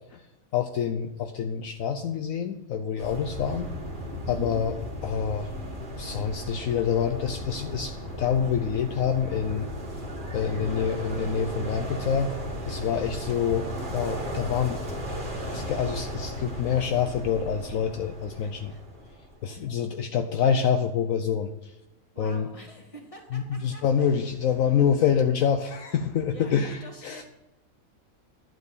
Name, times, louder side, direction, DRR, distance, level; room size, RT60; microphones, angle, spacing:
voice 1, 0.5-3.7 4.3-4.7 5.0-5.5 6.0-9.7 10.3-12.3 12.6-13.7 13.9-14.8 15.5-18.7 19.4-21.5 22.2-22.5 23.3-27.2, left 7 dB, 70° left, 6 dB, 1.0 m, -26 dB
sound 1, 3.0-19.6, equal, 35° right, 1.9 m, -35 dB
voice 2, 4.2-4.6 18.4-18.8 19.5-19.7 22.1-23.8 26.3-27.2, right 1 dB, 25° left, -1 dB, 2.2 m, -45 dB
11.0 x 4.7 x 8.2 m, 1.0 s
omnidirectional pair, 1.5 m